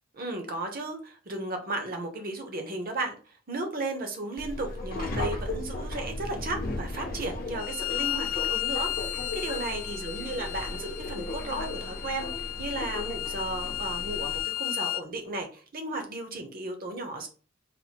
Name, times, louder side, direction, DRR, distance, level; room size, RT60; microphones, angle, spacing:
voice 1, 0.1-8.9 9.3-17.3, right 2 dB, 45° right, 4 dB, 0.8 m, -35 dB
Subway metro underground, 4.4-14.4, left 2 dB, 45° left, 0.8 m, -36 dB
Bowed string instrument, 7.6-15.0, left 15 dB, 90° left, 0.3 m, -34 dB
4.2 x 2.5 x 2.9 m, 0.38 s
head